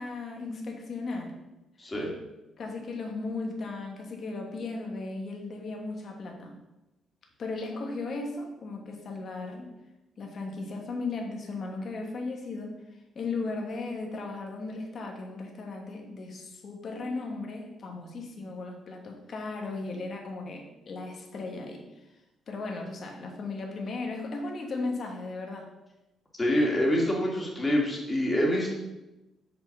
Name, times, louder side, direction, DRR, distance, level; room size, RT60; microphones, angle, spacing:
voice 1, 0.0-1.3 2.6-6.6 7.4-9.7 10.2-12.7 13.1-22.1 22.5-25.7, left 3 dB, 55° left, 1 dB, 1.3 m, -36 dB
voice 2, 1.8-2.1 26.4-28.7, equal, 20° left, -2 dB, 2.1 m, -26 dB
5.7 x 3.7 x 5.8 m, 0.98 s
cardioid pair, 90°, 0 cm